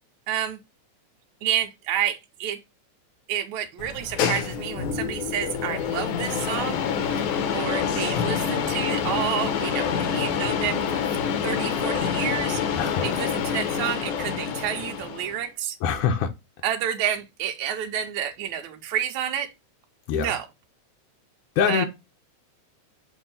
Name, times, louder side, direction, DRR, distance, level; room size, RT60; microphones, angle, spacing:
voice 1, 0.3-0.6 1.4-2.6 3.3-11.0 11.4-15.8 16.6-19.5 20.2-20.5 21.7-21.9, right 10 dB, 80° right, 1.9 m, -30 dB
sound 1, 3.8-15.4, left 7 dB, 90° left, 2.5 m, -27 dB
voice 2, 15.8-16.3 20.1-20.3 21.6-21.9, left 7 dB, 70° left, 1.5 m, -23 dB
7.5 x 2.7 x 5.5 m
omnidirectional pair, 3.4 m